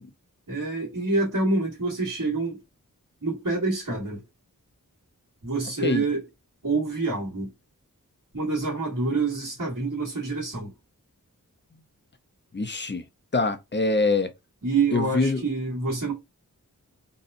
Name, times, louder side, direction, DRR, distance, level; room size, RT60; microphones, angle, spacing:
voice 1, 0.5-2.6 3.2-4.2 5.4-6.2 6.6-7.5 8.3-10.7 14.6-16.1, right 3 dB, 65° right, 2.0 m, -27 dB
voice 2, 12.5-13.0 13.3-14.3 14.9-15.4, left 3 dB, 35° left, 0.6 m, -24 dB
4.0 x 2.3 x 2.6 m
wide cardioid pair, 45°, 34 cm